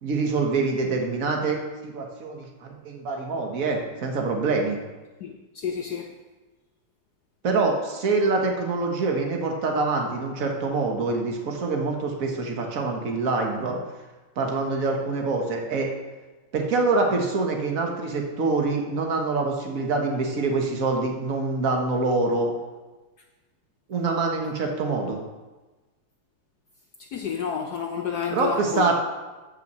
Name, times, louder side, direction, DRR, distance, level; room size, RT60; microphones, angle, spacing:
voice 1, 0.0-1.6 1.8-4.8 7.4-13.8 14.4-15.9 16.5-22.5 23.9-25.2 28.3-28.9, right 3 dB, 45° right, 2 dB, 1.5 m, -25 dB
voice 2, 5.2-6.1 27.1-28.9, left 7 dB, 70° left, 3 dB, 1.0 m, -30 dB
8.1 x 6.4 x 6.7 m, 1.2 s
omnidirectional pair, 2.3 m